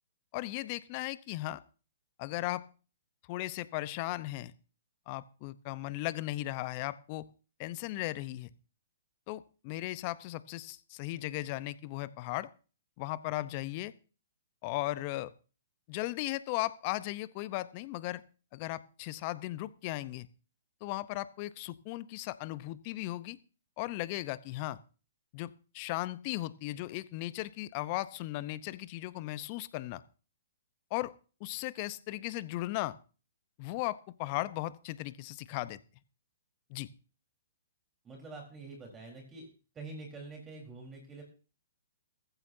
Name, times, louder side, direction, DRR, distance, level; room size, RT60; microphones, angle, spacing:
voice 1, 0.3-1.6 2.2-2.6 3.3-4.5 5.1-7.2 7.6-8.5 9.3-12.5 13.0-13.9 14.6-15.3 15.9-18.2 18.5-20.3 20.8-23.4 23.8-24.8 25.3-30.0 30.9-31.1 31.4-33.0 33.6-35.8 36.7-36.9, left 17 dB, 40° left, 17 dB, 0.8 m, -36 dB
voice 2, 38.0-39.5 39.7-41.2, right 3 dB, 20° right, 1 dB, 4.2 m, -46 dB
15.5 x 15.0 x 2.8 m, 0.36 s
hypercardioid pair, 125°, 0 cm